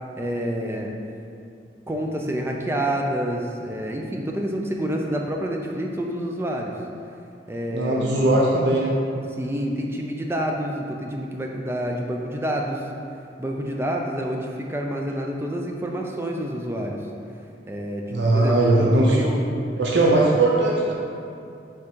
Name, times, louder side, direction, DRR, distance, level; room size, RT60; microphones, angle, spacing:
voice 1, 0.2-0.9 1.9-6.7 7.5-8.2 9.4-12.8 13.4-17.0 17.7-19.5, equal, 15° right, 1 dB, 0.5 m, -28 dB
voice 2, 7.7-8.9 18.1-19.2 19.8-20.9, right 2 dB, 75° right, -3 dB, 0.7 m, -19 dB
6.0 x 3.6 x 4.5 m, 2.5 s
head